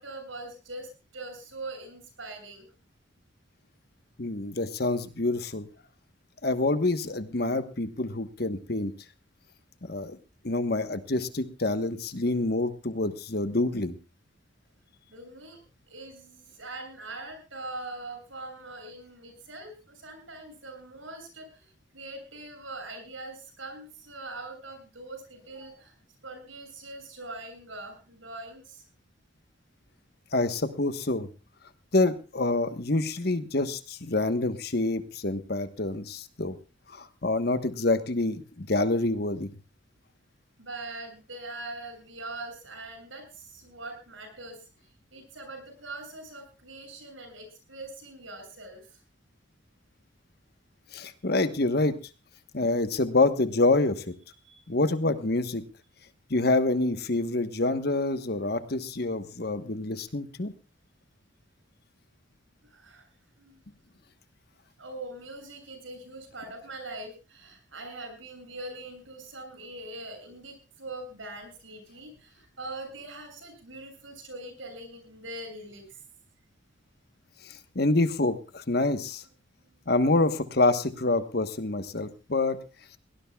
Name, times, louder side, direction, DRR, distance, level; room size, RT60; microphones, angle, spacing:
voice 1, 0.0-2.7 11.7-11.8 15.1-15.6 15.9-25.9 26.2-28.8 40.6-44.7 45.1-49.0 54.4-54.6 62.6-63.1 63.4-63.6 64.8-76.0 79.6-79.7, right 2 dB, 75° right, 5 dB, 7.4 m, -42 dB
voice 2, 4.2-5.7 6.4-8.9 9.9-10.2 10.4-13.9 30.3-31.3 31.9-36.6 36.9-39.5 50.9-51.9 52.5-54.1 54.7-55.6 56.3-60.5 77.4-79.2 79.9-82.6, left 2 dB, 50° left, 10 dB, 1.2 m, -27 dB
22.0 x 18.5 x 2.4 m, 0.31 s
head